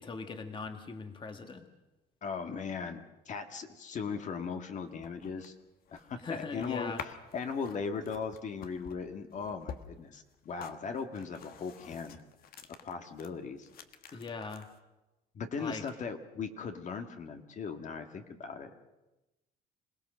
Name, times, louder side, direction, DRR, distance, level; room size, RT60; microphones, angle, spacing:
voice 1, 0.0-1.6 6.2-7.0 14.1-14.7 15.6-15.8, left 4 dB, 30° left, 6 dB, 1.6 m, -40 dB
voice 2, 2.2-5.5 5.9-6.9 7.3-12.2 12.8-13.7 14.1-14.2 15.3-18.7, left 5 dB, 45° left, 5 dB, 1.7 m, -38 dB
sound 1, 4.8-13.3 13.6-14.8, left 7 dB, 60° left, 1.5 m, -49 dB
26.5 x 17.5 x 6.5 m, 1.0 s
cardioid pair, 110°, 17 cm